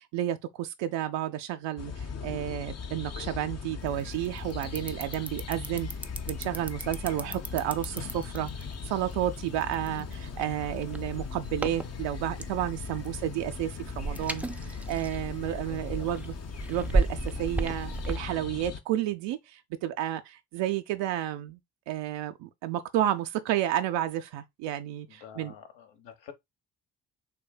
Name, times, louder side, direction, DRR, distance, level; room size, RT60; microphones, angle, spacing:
voice 1, 0.0-5.9 6.3-8.5 8.9-16.3 16.7-21.6 21.9-25.5, right 12 dB, 65° right, 0.6 m, -31 dB
sound 1, 1.8-18.8, left 5 dB, 35° left, 0.7 m, -39 dB
sound 2, 3.8-18.2, right 2 dB, 5° right, 0.3 m, -36 dB
voice 2, 15.6-16.1 25.1-26.3, left 8 dB, 60° left, 1.2 m, -49 dB
6.8 x 2.7 x 2.3 m
hypercardioid pair, 40°, 48 cm